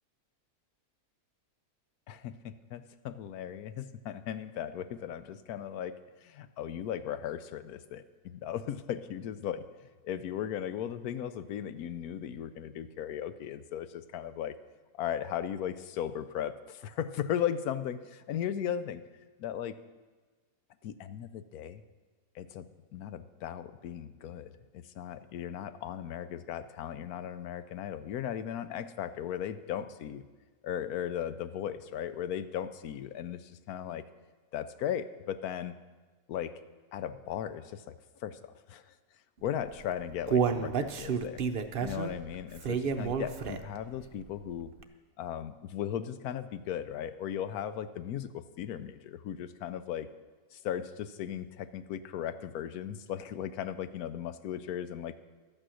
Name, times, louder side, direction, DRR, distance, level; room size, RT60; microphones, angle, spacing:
voice 1, 2.1-9.7 10.0-14.5 15.0-19.0 19.4-19.8 20.8-21.8 22.3-30.2 30.6-34.0 34.5-35.8 36.3-36.5 36.9-37.8 38.2-38.8 39.4-41.4 41.8-44.7 45.2-50.1 50.5-55.2, left 9 dB, 80° left, 12 dB, 1.1 m, -37 dB
Human voice, 39.7-43.9 44.2-44.3 44.8-44.9, right 6 dB, 55° right, 0.6 m, -30 dB
12.0 x 8.8 x 6.3 m, 1.3 s
omnidirectional pair, 1.6 m